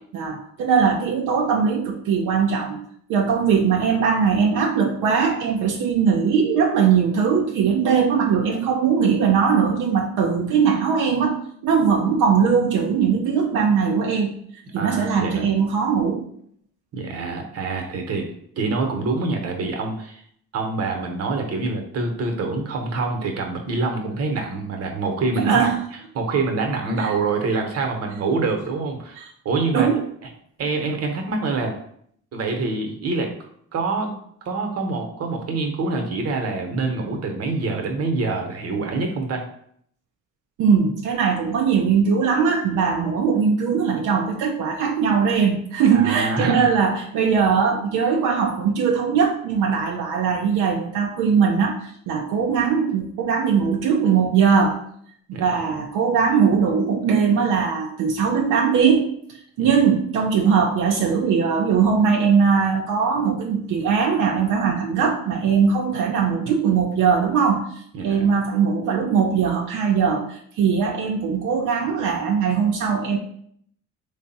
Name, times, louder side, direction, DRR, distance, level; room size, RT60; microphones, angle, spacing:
voice 1, 0.1-2.8 3.1-11.4 11.6-14.3 14.7-16.3 25.4-25.8 27.0-27.1 29.2-29.3 29.7-30.0 40.6-54.8 55.3-59.1 59.6-67.6 68.0-73.2, right 6 dB, 85° right, 0 dB, 0.5 m, -20 dB
voice 2, 14.8-15.5 16.9-20.2 20.5-25.7 26.1-29.9 30.6-31.7 32.3-34.1 34.4-39.5 45.9-46.7 55.3-55.7 59.6-59.7 67.9-68.3, right 3 dB, 55° right, 3 dB, 0.8 m, -26 dB
3.3 x 2.0 x 4.0 m, 0.65 s
cardioid pair, 90°, 30 cm